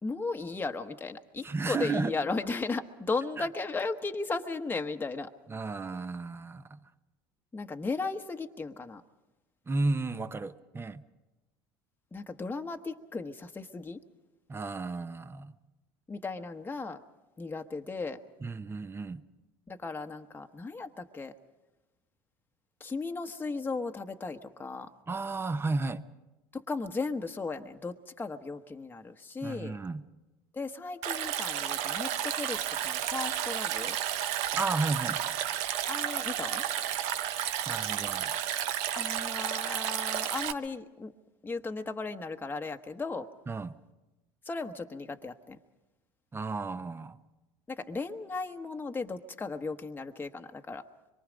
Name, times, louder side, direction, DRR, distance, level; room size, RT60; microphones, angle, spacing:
voice 1, 0.0-5.3 7.5-9.0 12.1-14.0 16.1-17.0 17.4-18.2 19.7-21.3 22.8-24.9 26.5-29.8 30.5-34.0 35.9-36.6 38.9-41.1 41.4-43.3 44.5-45.6 47.7-50.8, left 3 dB, 15° left, 5 dB, 1.1 m, -36 dB
voice 2, 1.4-2.1 5.5-6.8 9.7-11.0 14.5-15.5 18.4-19.2 25.1-26.0 29.4-30.0 34.5-35.2 37.7-38.6 43.5-43.7 46.3-47.2, right 3 dB, 20° right, 13 dB, 0.9 m, -33 dB
Stream, 31.0-40.5, right 11 dB, 65° right, 0.8 m, -32 dB
25.0 x 23.0 x 5.2 m, 1.1 s
hypercardioid pair, 85°, 12 cm